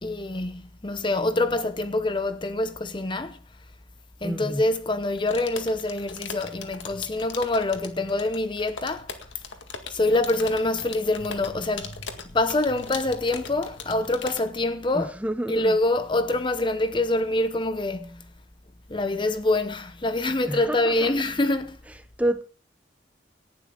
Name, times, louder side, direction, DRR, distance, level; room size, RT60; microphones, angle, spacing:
voice 1, 0.0-3.4 4.2-9.1 9.9-12.0 12.3-15.1 15.5-18.3 18.9-21.8, left 2 dB, 25° left, 0.7 m, -25 dB
voice 2, 4.2-4.6 14.9-15.7 20.5-20.9 22.2-22.4, right 1 dB, 10° right, 0.9 m, -28 dB
sound 1, 5.1-14.6, left 5 dB, 90° left, 2.0 m, -40 dB
18.0 x 11.5 x 3.8 m
head